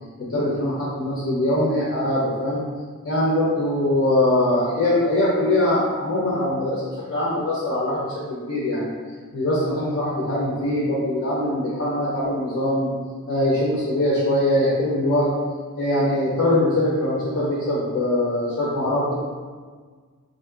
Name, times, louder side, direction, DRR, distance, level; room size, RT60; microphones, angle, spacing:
voice 1, 0.3-2.6 3.0-6.8 7.1-8.9 9.3-12.9 13.3-15.3 15.7-19.1, left 1 dB, 50° left, -7 dB, 0.7 m, -22 dB
3.7 x 2.7 x 2.3 m, 1.5 s
wide cardioid pair, 120°, 30 cm